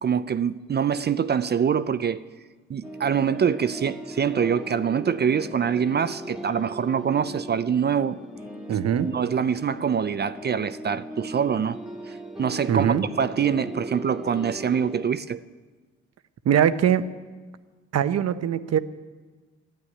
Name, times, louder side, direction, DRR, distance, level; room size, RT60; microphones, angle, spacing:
voice 1, 0.0-2.2 2.7-8.2 9.0-11.8 12.1-15.4, right 7 dB, 35° right, 0.5 m, -25 dB
sound 1, 2.8-15.1, right 1 dB, ahead, 2.0 m, -38 dB
voice 2, 8.7-9.1 12.7-13.1 16.4-17.1 17.9-18.8, right 9 dB, 55° right, 0.9 m, -22 dB
12.5 x 11.5 x 9.7 m
cardioid pair, 90°, 30 cm